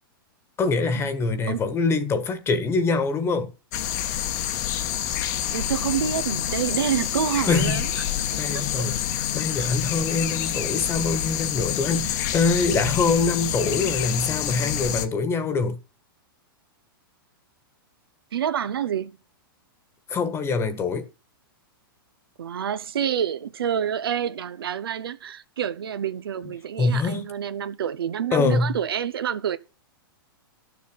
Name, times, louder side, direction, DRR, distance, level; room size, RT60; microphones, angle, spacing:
voice 1, 0.6-3.5 7.5-7.8 8.4-15.8 20.1-21.1 26.8-27.3 28.3-28.8, left 4 dB, 20° left, 1.4 m, -24 dB
sound 1, 3.7-15.1, left 11 dB, 50° left, 1.2 m, -27 dB
voice 2, 5.5-7.9 8.8-8.9 9.6-9.7 18.3-19.2 22.4-29.6, right 9 dB, 85° right, 0.9 m, -28 dB
11.5 x 7.2 x 7.5 m
hypercardioid pair, 135°, 12 cm